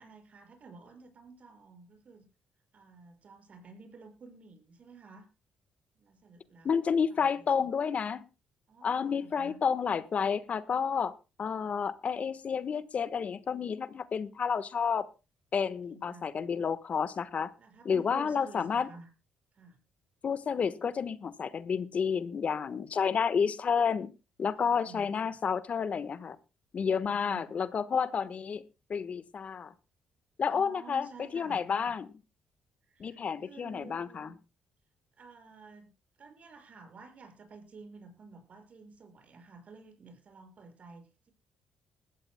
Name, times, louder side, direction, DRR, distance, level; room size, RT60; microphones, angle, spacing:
voice 1, 0.0-2.3 2.7-5.3 5.9-7.5 8.7-9.6 15.7-16.3 17.5-19.1 19.5-19.8 24.6-25.4 27.0-27.7 30.5-31.9 32.9-34.3 35.2-35.9 36.2-41.3, right 3 dB, 50° right, 6 dB, 6.2 m, -52 dB
voice 2, 6.6-8.2 8.8-11.1 11.4-15.0 15.5-17.5 17.8-18.9 20.2-24.1 24.4-26.4 26.7-28.6 28.9-29.7 30.4-32.1 33.0-34.4, left 6 dB, 50° left, 14 dB, 1.3 m, -30 dB
21.0 x 14.5 x 2.2 m, 0.30 s
supercardioid pair, 60°, 3 cm